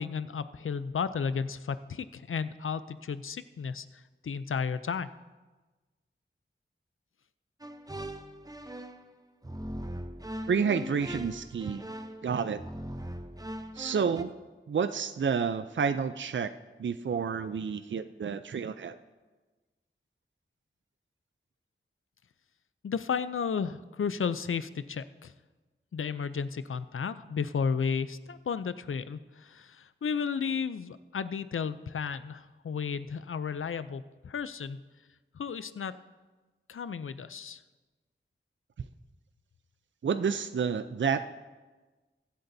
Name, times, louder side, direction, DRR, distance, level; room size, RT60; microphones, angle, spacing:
voice 1, 0.0-3.9 4.2-5.1 22.8-25.3 25.9-34.8 35.4-36.0 36.7-37.6, left 6 dB, 80° left, 14 dB, 0.4 m, -33 dB
sound 1, 7.6-9.1 9.4-14.2, equal, 20° right, 0.7 m, -40 dB
voice 2, 10.5-11.8 12.2-12.6 13.8-14.3 14.7-16.5 16.8-19.0 40.0-41.3, right 6 dB, 65° right, 11 dB, 0.4 m, -29 dB
21.5 x 8.0 x 2.7 m, 1.3 s
wide cardioid pair, 55°, 21 cm